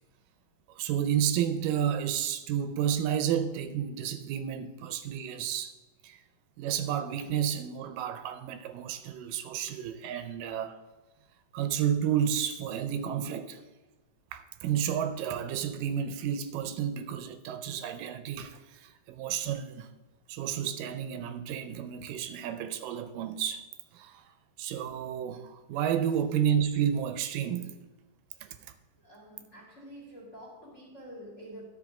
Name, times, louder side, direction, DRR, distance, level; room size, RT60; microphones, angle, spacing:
voice 1, 0.7-5.7 6.0-6.2 6.6-10.8 11.5-13.6 14.3-19.9 20.3-23.7 23.9-24.2 24.6-27.8 28.4-28.7, right 9 dB, 85° right, 2.2 m, -31 dB
voice 2, 29.0-31.6, equal, 25° left, 1.9 m, -47 dB
11.5 x 6.2 x 4.8 m
omnidirectional pair, 3.9 m